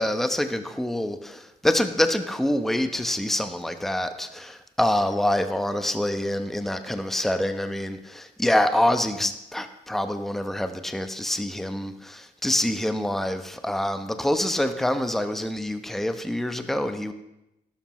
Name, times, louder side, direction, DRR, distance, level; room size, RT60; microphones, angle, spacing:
voice 1, 0.0-17.1, left 1 dB, ahead, 8 dB, 1.0 m, -26 dB
12.0 x 12.0 x 3.1 m, 0.89 s
hypercardioid pair, 50°, 20 cm